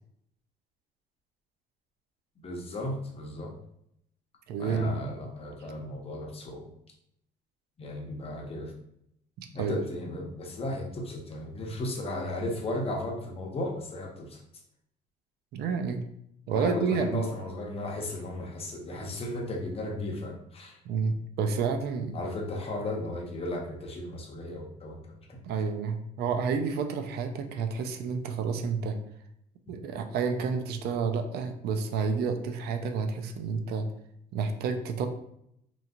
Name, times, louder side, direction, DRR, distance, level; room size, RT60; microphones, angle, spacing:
voice 1, 2.4-3.5 4.6-6.7 7.8-8.7 9.5-14.4 16.5-20.8 22.1-25.4, left 1 dB, 35° left, 0 dB, 0.8 m, -35 dB
voice 2, 4.5-5.1 9.4-9.8 15.5-16.0 16.5-17.2 20.9-22.2 25.4-29.0 29.7-33.9 34.3-35.1, right 5 dB, 70° right, 6 dB, 0.5 m, -30 dB
3.0 x 2.6 x 2.4 m, 0.74 s
cardioid pair, 110°, 17 cm